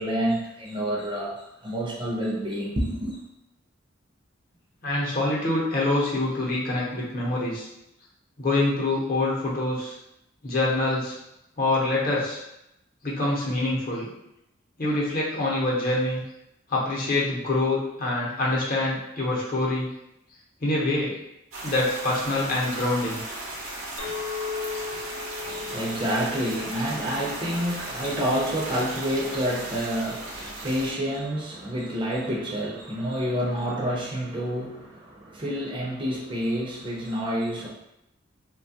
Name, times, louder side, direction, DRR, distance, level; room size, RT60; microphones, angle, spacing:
voice 1, 0.0-3.2 25.4-37.7, equal, 25° right, -4 dB, 0.5 m, -28 dB
voice 2, 4.8-7.7 8.4-9.9 10.4-11.2 11.6-12.4 13.0-14.1 14.8-16.2 16.7-19.9 20.6-21.1 21.6-23.2, left 2 dB, 45° left, -5 dB, 0.7 m, -25 dB
sound 1, 21.5-30.9, right 1 dB, 90° right, 0.7 m, -36 dB
Chink clink, 24.0-28.5, left 5 dB, 75° left, 0.5 m, -37 dB
2.8 x 2.2 x 2.7 m, 0.84 s
head